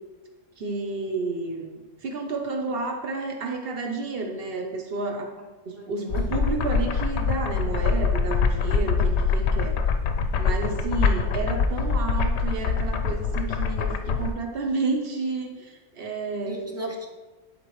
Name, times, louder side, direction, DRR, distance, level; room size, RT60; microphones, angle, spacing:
voice 1, 0.6-5.3 5.6-9.8 10.4-16.6, right 3 dB, 55° right, 2 dB, 1.1 m, -31 dB
voice 2, 5.8-6.4 8.6-8.9 10.5-10.8 16.4-17.1, right 1 dB, 15° right, 1 dB, 0.6 m, -37 dB
sound 1, 6.1-14.3, left 5 dB, 70° left, 0.8 m, -24 dB
11.0 x 4.4 x 3.2 m, 1.2 s
omnidirectional pair, 1.3 m